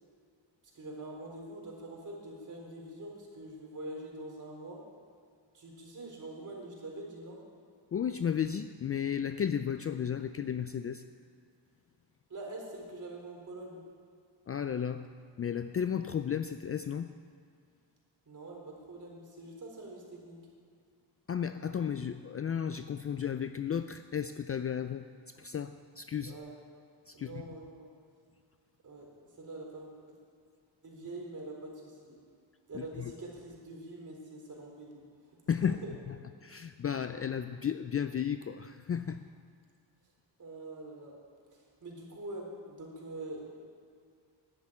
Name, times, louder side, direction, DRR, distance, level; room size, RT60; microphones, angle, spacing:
voice 1, 0.7-4.8 5.5-7.4 12.3-13.8 18.3-18.6 18.9-20.4 26.2-26.6 27.1-27.9 28.8-29.1 29.3-30.0 30.8-32.2 32.7-35.0 35.8-35.9 40.4-41.1 41.8-43.6, right 2 dB, 40° right, -1 dB, 3.9 m, -44 dB
voice 2, 7.9-11.1 14.5-15.1 15.4-17.1 21.3-26.4 27.1-27.4 32.7-33.1 35.5-35.8 36.1-36.2 36.4-39.2, left 8 dB, 35° left, 10 dB, 0.4 m, -34 dB
10.5 x 8.1 x 9.8 m, 2.2 s
cardioid pair, 100°, 44 cm